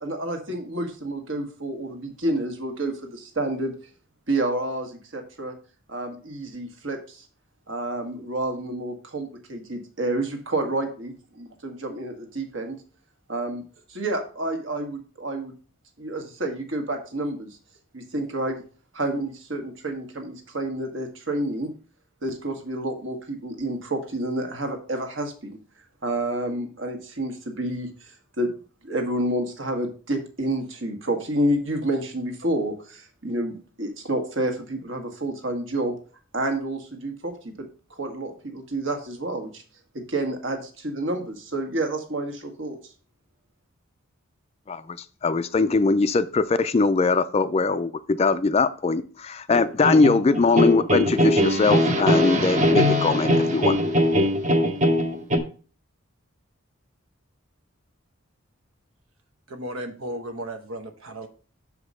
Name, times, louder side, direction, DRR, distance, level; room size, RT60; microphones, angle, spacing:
voice 1, 0.0-3.7 4.3-5.5 5.9-7.2 7.7-12.8 13.3-13.6 13.9-15.5 16.0-17.5 17.9-18.6 18.9-21.7 22.2-25.6 26.0-28.5 28.8-36.0 36.3-37.5 38.0-39.6 39.9-42.8, right 1 dB, 65° right, 5 dB, 1.5 m, -29 dB
voice 2, 44.7-53.8, left 4 dB, 30° left, 13 dB, 0.3 m, -21 dB
sound 1, 49.5-55.4, equal, 35° right, 0.9 m, -21 dB
voice 3, 59.5-61.3, right 1 dB, 80° right, 7 dB, 1.1 m, -35 dB
6.2 x 5.0 x 5.4 m, 0.38 s
head